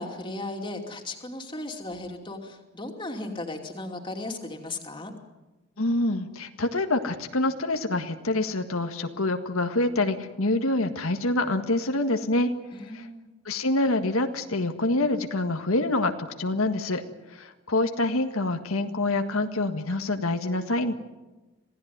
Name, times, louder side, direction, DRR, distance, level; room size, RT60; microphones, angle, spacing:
voice 1, 0.0-5.1 12.7-13.3, left 2 dB, 20° left, 3 dB, 2.8 m, -36 dB
voice 2, 5.8-12.5 12.9-13.1 13.5-16.1 16.4-17.0 17.3-20.9, left 2 dB, 85° left, 6 dB, 1.8 m, -26 dB
27.0 x 17.0 x 9.5 m, 1.1 s
head